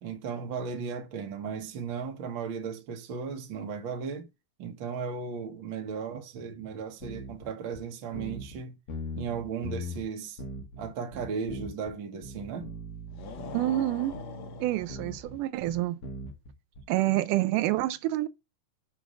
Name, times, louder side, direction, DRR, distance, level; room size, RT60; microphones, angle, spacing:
voice 1, 0.0-4.3 4.6-8.7 9.1-10.4 10.8-12.7, right 6 dB, 50° right, 1.6 m, -36 dB
sound 1, 7.0-7.5 7.7-7.8 8.1-8.6 8.9-10.1 10.4-11.9 12.2-16.8, equal, 50° left, 2.2 m, -40 dB
sound 2, 13.1-15.5, left 6 dB, 70° left, 1.1 m, -44 dB
voice 2, 13.5-14.1 14.6-16.0 16.9-18.3, right 16 dB, 85° right, 2.2 m, -27 dB
6.8 x 3.5 x 6.2 m
omnidirectional pair, 3.6 m